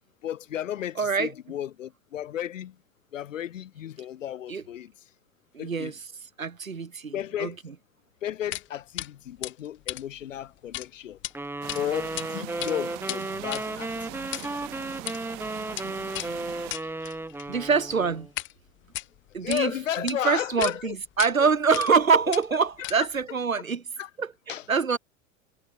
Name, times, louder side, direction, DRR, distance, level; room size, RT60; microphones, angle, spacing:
voice 1, 0.2-2.8 3.1-4.9 5.6-5.9 7.1-7.6 8.2-11.2 11.7-14.1 19.4-20.9 22.8-22.9 24.0-24.1 24.5-24.6, left 11 dB, 70° left, 1.0 m, -33 dB
voice 2, 1.0-1.3 4.5-4.6 5.5-6.0 6.4-7.5 15.8-16.0 17.0-17.1 17.5-18.3 19.3-19.7 20.0-23.8 24.2-25.0, right 5 dB, 80° right, 1.8 m, -25 dB
sound 1, 8.5-8.7 9.0-9.1 9.4-10.9 11.1-11.3 11.7-12.3 12.5-18.5 18.8-19.6 20.1-20.2 20.6-20.8 21.2-21.3 21.7-22.0 22.3-23.2, left 16 dB, 30° left, 1.0 m, -36 dB
sound 2, 11.4-18.3, right 2 dB, 5° right, 3.5 m, -34 dB
sound 3, 11.6-16.7, right 38 dB, 45° right, 3.0 m, -41 dB
figure-of-eight pair, 85°, 40 cm